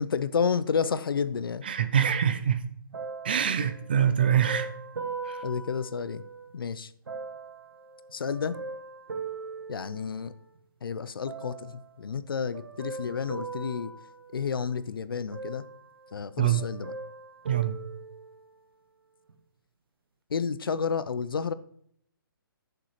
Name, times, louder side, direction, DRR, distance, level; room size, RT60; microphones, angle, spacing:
voice 1, 0.0-1.6 5.4-6.2 6.5-6.9 8.1-8.6 9.7-10.3 10.8-13.9 14.3-15.6 16.1-16.9 20.3-21.5, left 6 dB, 70° left, 0.6 m, -30 dB
voice 2, 1.6-2.6 3.2-4.7 5.2-5.4 16.4-16.6 17.5-17.8, right 9 dB, 25° right, 0.4 m, -24 dB
sound 1, 2.9-6.5 7.1-10.6 11.3-11.9 12.5-14.9 15.3-16.3 16.6-18.6 19.3-19.4, right 4 dB, 90° right, 1.0 m, -41 dB
9.7 x 6.8 x 3.2 m
hypercardioid pair, 175°, 12 cm